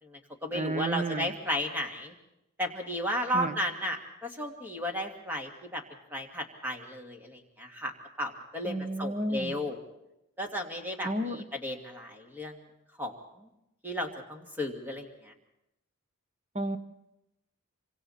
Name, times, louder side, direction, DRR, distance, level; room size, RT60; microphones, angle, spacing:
voice 1, 0.0-2.1 2.6-5.8 6.1-7.9 8.2-9.8 10.4-12.6 13.0-13.5 13.8-15.3, equal, 10° right, 2 dB, 2.3 m, -34 dB
voice 2, 0.5-1.4 3.3-3.6 8.6-9.6 11.0-11.4 16.5-16.8, right 1 dB, 35° right, 9 dB, 1.1 m, -32 dB
26.5 x 24.5 x 4.3 m, 0.89 s
head